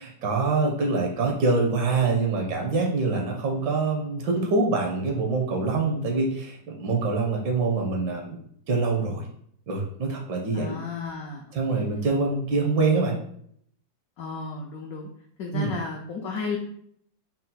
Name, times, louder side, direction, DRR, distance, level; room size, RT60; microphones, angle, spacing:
voice 1, 0.2-8.4 8.7-9.2 9.7-10.8 11.5-13.2 15.5-15.7, right 3 dB, 70° right, 1 dB, 1.3 m, -25 dB
voice 2, 10.5-11.8 14.2-15.1 15.4-16.6, left 4 dB, 80° left, 0 dB, 0.8 m, -33 dB
4.2 x 2.0 x 3.8 m, 0.67 s
omnidirectional pair, 2.0 m